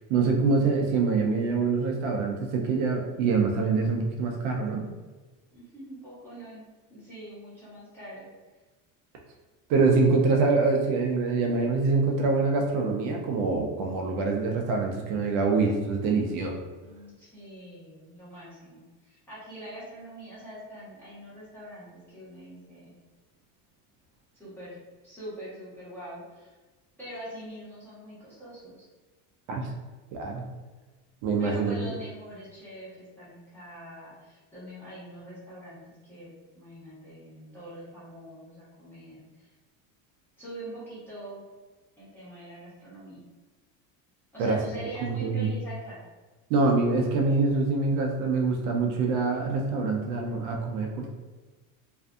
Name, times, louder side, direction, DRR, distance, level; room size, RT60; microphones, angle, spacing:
voice 1, 0.1-4.9 9.7-16.7 29.5-29.7 30.1-30.4 31.2-31.7 44.4-45.5 46.5-51.1, right 4 dB, 70° right, 1 dB, 0.5 m, -25 dB
voice 2, 5.5-6.6 6.9-8.3 16.8-23.0 24.4-24.8 25.0-26.5 27.0-28.9 31.4-36.3 36.5-39.5 40.4-41.4 42.0-43.3 44.3-46.0, right 1 dB, 5° left, -11 dB, 1.1 m, -43 dB
2.6 x 2.5 x 2.3 m, 1.3 s
cardioid pair, 160°, 43 cm